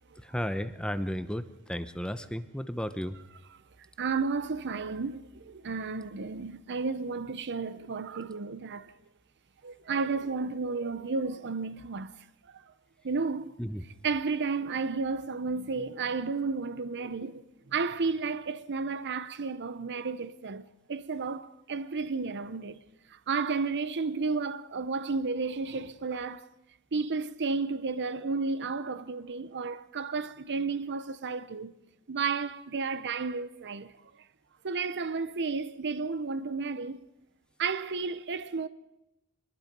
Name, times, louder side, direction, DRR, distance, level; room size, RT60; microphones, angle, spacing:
voice 1, 0.3-3.1 13.6-13.8, equal, 5° left, 0.8 m, -33 dB
voice 2, 4.0-8.9 9.6-12.1 12.5-12.6 13.0-13.5 13.8-17.4 17.7-22.8 23.1-26.5 26.9-31.7 32.1-33.9 34.6-37.0 37.6-38.7, right 4 dB, 55° right, 0.8 m, -32 dB
25.0 x 21.0 x 5.3 m
head